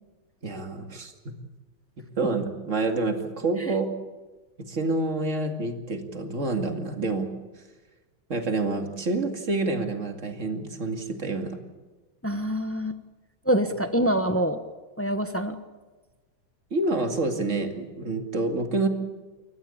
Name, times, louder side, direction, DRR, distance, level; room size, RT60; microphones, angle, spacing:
voice 1, 0.4-1.1 2.2-3.9 4.7-7.3 8.3-11.6 14.0-14.1 16.7-18.9, right 2 dB, 35° right, 4 dB, 2.5 m, -28 dB
voice 2, 12.2-13.0 13.5-14.6 15.0-15.6, equal, 10° left, 8 dB, 0.7 m, -25 dB
28.5 x 14.5 x 8.6 m, 1.3 s
omnidirectional pair, 2.2 m